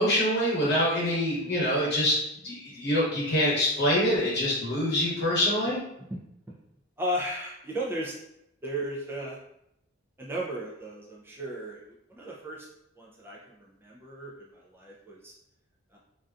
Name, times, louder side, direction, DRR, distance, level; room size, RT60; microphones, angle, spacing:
voice 1, 0.0-2.2 2.4-5.8, left 1 dB, 60° left, -5 dB, 0.9 m, -25 dB
voice 2, 7.0-8.1 8.6-9.4 10.2-12.7 13.0-15.3 15.9-16.0, right 1 dB, 10° right, -4 dB, 0.3 m, -35 dB
2.5 x 2.2 x 2.4 m, 0.79 s
head